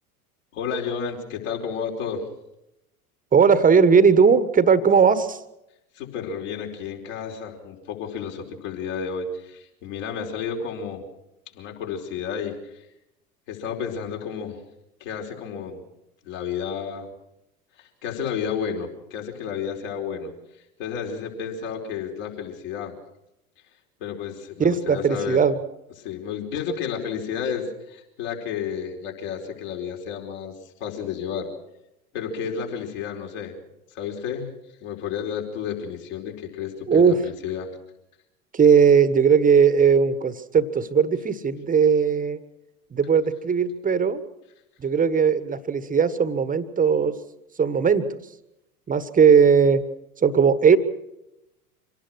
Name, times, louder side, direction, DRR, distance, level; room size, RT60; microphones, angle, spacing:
voice 1, 0.5-2.2 5.9-11.0 11.5-12.8 13.5-14.6 15.0-15.8 16.2-17.1 17.8-20.3 20.8-22.9 24.0-25.4 26.0-30.5 30.8-31.5 32.1-33.5 33.9-34.5 34.8-37.7, left 7 dB, 55° left, 1 dB, 4.8 m, -31 dB
voice 2, 3.3-5.4 24.6-25.5 36.9-37.2 38.5-42.4 42.9-44.2 44.8-47.1 47.6-48.2 48.9-49.8 50.2-50.8, right 6 dB, 20° right, 14 dB, 1.4 m, -18 dB
26.0 x 18.0 x 6.4 m, 0.87 s
figure-of-eight pair, 80°, 45 cm